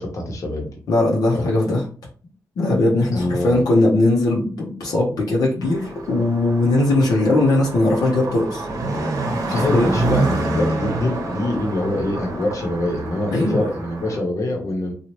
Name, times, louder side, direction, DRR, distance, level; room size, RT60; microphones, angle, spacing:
voice 1, 0.0-0.7 1.3-1.5 3.1-3.6 9.5-14.9, left 1 dB, 55° left, 1 dB, 1.0 m, -24 dB
voice 2, 0.9-1.8 2.6-8.7 9.5-9.9 13.3-13.7, left 2 dB, 85° left, -3 dB, 0.8 m, -19 dB
Car passing by, 5.6-14.2, right 2 dB, 65° right, 0.8 m, -27 dB
2.9 x 2.3 x 3.1 m, 0.41 s
cardioid pair, 70°, 6 cm